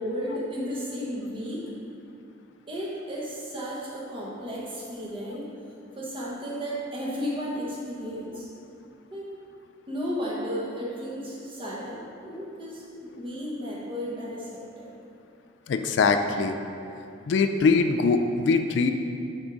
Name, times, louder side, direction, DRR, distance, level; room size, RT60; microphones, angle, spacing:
voice 1, 0.0-1.7 2.7-5.5 6.0-8.5 9.1-9.3 9.9-14.9, equal, 25° right, -5 dB, 1.0 m, -34 dB
voice 2, 15.7-16.5 17.3-18.9, left 4 dB, 65° left, 7 dB, 0.3 m, -22 dB
6.0 x 4.8 x 3.9 m, 2.6 s
head